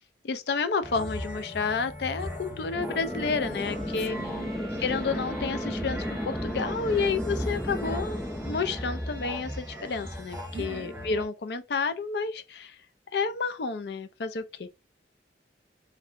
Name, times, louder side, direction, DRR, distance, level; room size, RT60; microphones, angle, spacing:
voice 1, 0.2-4.2 4.8-12.8 13.1-14.7, left 4 dB, 70° left, 0.5 m, -30 dB
sound 1, 0.8-11.3, equal, 15° right, 0.8 m, -38 dB
sound 2, 2.7-10.3, equal, 5° left, 0.4 m, -35 dB
voice 2, 4.2-4.6 10.5-11.0, right 5 dB, 70° right, 0.4 m, -42 dB
3.2 x 2.8 x 2.5 m
head